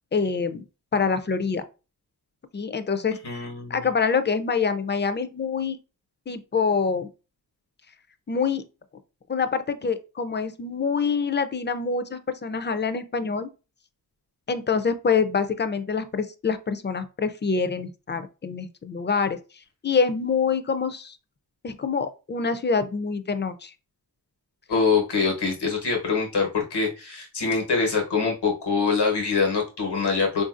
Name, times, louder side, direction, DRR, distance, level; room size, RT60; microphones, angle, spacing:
voice 1, 0.1-0.6 0.9-1.6 2.5-5.8 6.3-7.1 8.3-8.6 9.3-13.5 14.5-19.4 19.8-21.2 21.6-23.7, left 5 dB, 30° left, 0.4 m, -26 dB
voice 2, 3.2-3.9 24.7-30.4, left 5 dB, 85° left, 1.2 m, -24 dB
3.7 x 2.6 x 2.4 m
cardioid pair, 55°, 39 cm